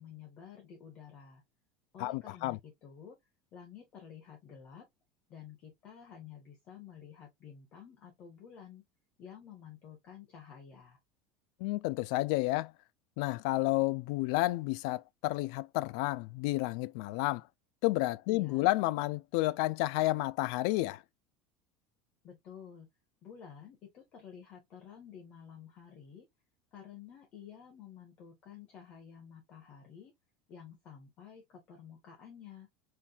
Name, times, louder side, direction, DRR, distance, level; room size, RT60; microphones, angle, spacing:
voice 1, 0.0-1.4 1.9-3.2 3.5-4.9 5.3-8.8 9.2-11.0 18.3-18.7 22.2-22.9 23.2-26.3 26.7-30.1 30.5-32.7, left 8 dB, 35° left, 1.4 m, -51 dB
voice 2, 2.0-2.6 11.6-12.7 13.2-17.4 17.8-21.0, left 19 dB, 60° left, 0.3 m, -31 dB
4.5 x 3.6 x 2.4 m
cardioid pair, 175°, 4 cm